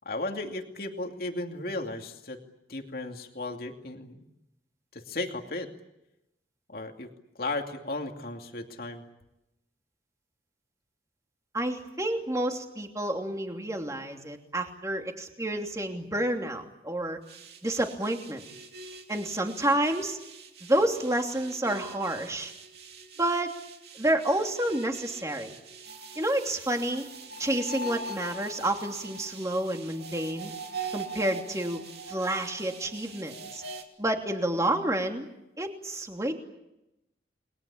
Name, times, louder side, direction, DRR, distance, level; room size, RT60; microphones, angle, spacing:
voice 1, 0.0-2.4 2.7-4.2 4.9-5.7 6.7-7.1 7.4-9.0, left 2 dB, 55° left, 4 dB, 2.7 m, -35 dB
voice 2, 11.5-17.2 17.6-18.4 19.1-20.2 20.6-22.5 23.2-23.5 24.0-25.5 26.2-27.0 27.4-30.5 30.9-31.8 32.1-33.6 34.0-35.3 35.6-36.3, right 1 dB, 20° right, 3 dB, 2.9 m, -29 dB
sound 1, 17.3-33.8, right 3 dB, 65° right, 3.1 m, -43 dB
30.0 x 21.5 x 8.7 m, 0.90 s
head